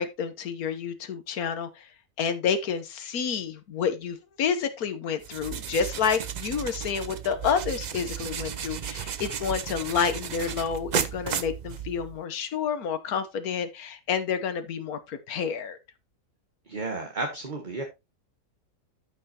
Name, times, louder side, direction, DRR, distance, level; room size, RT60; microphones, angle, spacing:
voice 1, 0.0-1.9 2.2-15.8, left 7 dB, 75° left, 1.5 m, -29 dB
sound 1, 5.2-12.2, right 8 dB, 75° right, 0.4 m, -34 dB
voice 2, 16.7-17.8, right 2 dB, 35° right, 1.4 m, -32 dB
13.0 x 5.6 x 2.9 m
omnidirectional pair, 1.6 m